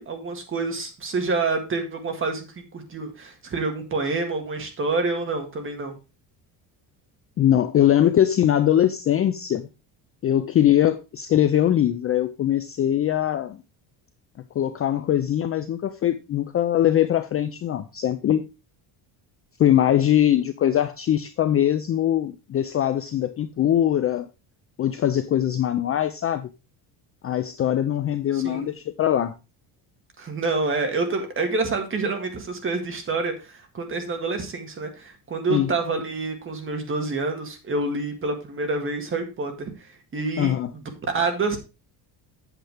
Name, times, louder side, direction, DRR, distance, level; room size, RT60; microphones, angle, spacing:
voice 1, 0.0-5.9 28.3-28.7 30.2-40.5 41.1-41.6, right 3 dB, 25° right, 1.8 m, -27 dB
voice 2, 7.4-9.6 10.2-13.6 14.6-18.4 19.6-24.3 24.8-26.5 27.2-29.3 35.5-35.7 40.4-40.7, left 11 dB, 30° left, 0.4 m, -21 dB
8.0 x 7.5 x 3.3 m
cardioid pair, 145°, 47 cm